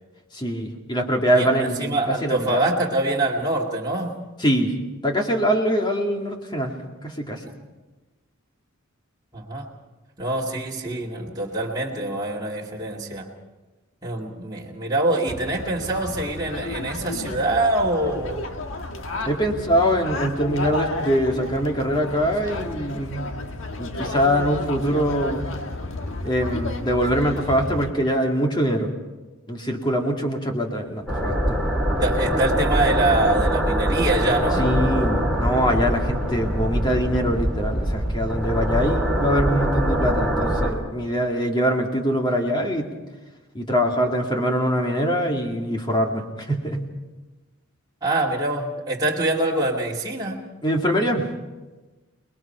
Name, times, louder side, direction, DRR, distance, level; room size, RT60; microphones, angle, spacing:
voice 1, 0.3-2.6 4.4-4.7 5.0-6.8 7.0-7.5 19.3-23.3 23.8-25.5 26.2-28.9 29.5-31.6 34.6-42.9 43.5-46.8 50.6-51.3, equal, 20° left, 1 dB, 2.3 m, -23 dB
voice 2, 1.4-4.2 9.3-9.7 10.2-13.3 14.0-18.4 32.0-34.7 48.0-50.4, right 2 dB, 20° right, -4 dB, 2.2 m, -24 dB
sound 1, 15.3-27.9, left 2 dB, 60° left, 1.6 m, -32 dB
sound 2, 31.1-40.7, equal, 5° left, 3.0 m, -23 dB
29.0 x 20.5 x 4.5 m, 1.2 s
head